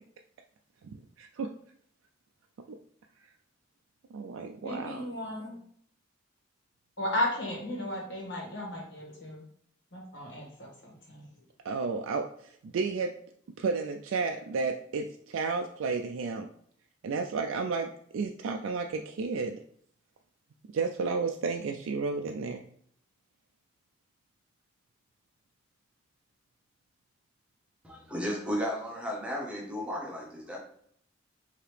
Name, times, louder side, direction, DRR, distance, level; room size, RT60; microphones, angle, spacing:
voice 1, 1.2-1.5 4.1-5.0 11.7-13.1 13.6-16.5 17.0-19.6 20.7-22.6, right 4 dB, 80° right, 3 dB, 0.3 m, -32 dB
voice 2, 4.6-5.5 7.0-9.4 9.9-11.2, left 1 dB, 60° left, -3 dB, 1.5 m, -34 dB
voice 3, 27.8-30.6, equal, 5° right, -3 dB, 0.8 m, -34 dB
4.7 x 2.8 x 3.3 m, 0.64 s
head